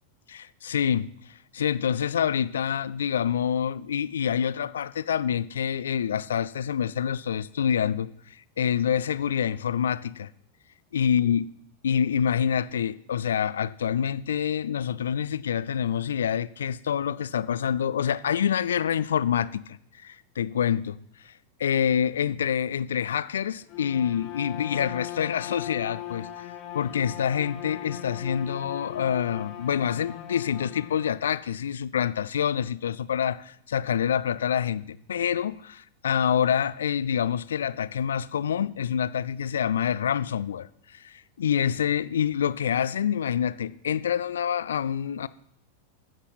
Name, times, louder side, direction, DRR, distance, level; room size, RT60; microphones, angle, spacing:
voice 1, 0.3-1.1 1.5-8.1 8.6-10.3 10.9-11.4 11.8-19.8 20.0-21.0 21.2-21.3 21.6-26.4 26.7-45.3, left 8 dB, 65° left, 0.4 m, -26 dB
Bowed string instrument, 23.6-31.2, left 13 dB, 40° left, 1.2 m, -39 dB
12.5 x 8.1 x 4.3 m
figure-of-eight pair, 90°, 0 cm